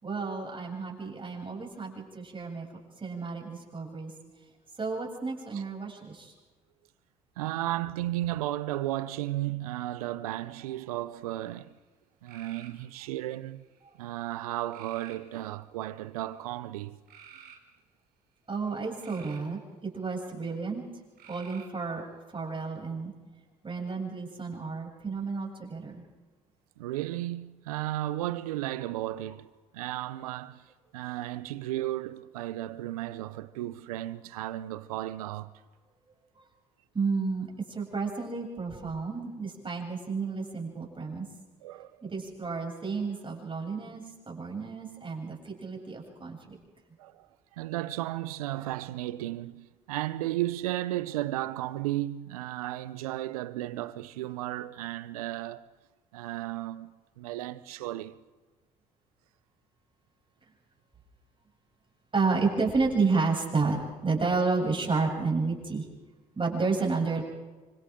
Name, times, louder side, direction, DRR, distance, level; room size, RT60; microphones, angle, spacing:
voice 1, 0.0-2.7 3.0-4.1 4.8-6.3 18.5-20.8 21.3-23.1 23.6-26.0 36.3-36.4 36.9-41.2 42.0-46.6 62.1-65.8 66.4-67.2, right 4 dB, 30° right, 7.8 m, -31 dB
voice 2, 7.4-11.8 12.2-13.6 14.0-17.0 26.8-30.7 30.9-35.5 41.6-42.0 47.0-55.7 56.1-56.9 57.2-58.2, right 15 dB, 85° right, 0.8 m, -34 dB
sound 1, 11.3-11.7 12.3-12.8 13.5-14.0 14.7-15.3 16.0-16.3 17.1-17.6 18.7-19.5 21.2-21.9, right 8 dB, 60° right, 4.1 m, -51 dB
29.5 x 26.0 x 3.8 m
hypercardioid pair, 55°, 18 cm